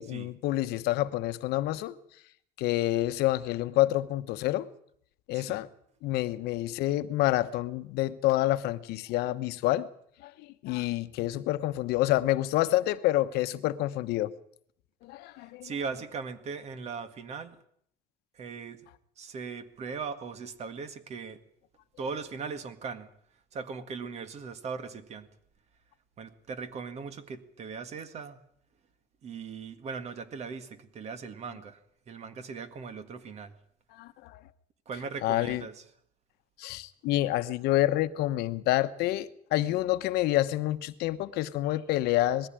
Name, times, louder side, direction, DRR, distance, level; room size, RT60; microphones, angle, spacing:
voice 1, 0.0-1.9 2.6-4.7 5.3-5.7 6.0-9.9 10.2-14.3 15.0-15.7 33.9-34.4 35.2-35.6 36.6-42.5, left 15 dB, 85° left, 1.0 m, -28 dB
voice 2, 15.4-17.6 18.3-18.9 19.2-21.4 22.0-23.1 23.5-25.3 26.2-28.4 29.2-31.8 32.1-33.5 34.9-35.8, right 5 dB, 40° right, 1.9 m, -39 dB
20.0 x 15.0 x 8.9 m
cardioid pair, 150°, 16 cm